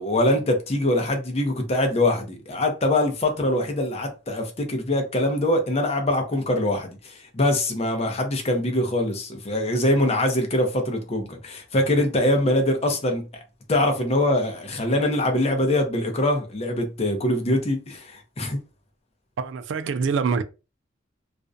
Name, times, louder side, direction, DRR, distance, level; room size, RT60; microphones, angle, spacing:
voice 1, 0.0-13.2 13.7-18.6, left 1 dB, 30° left, 0.6 m, -23 dB
voice 2, 19.4-20.4, right 5 dB, 70° right, 0.3 m, -25 dB
2.4 x 2.1 x 2.5 m
head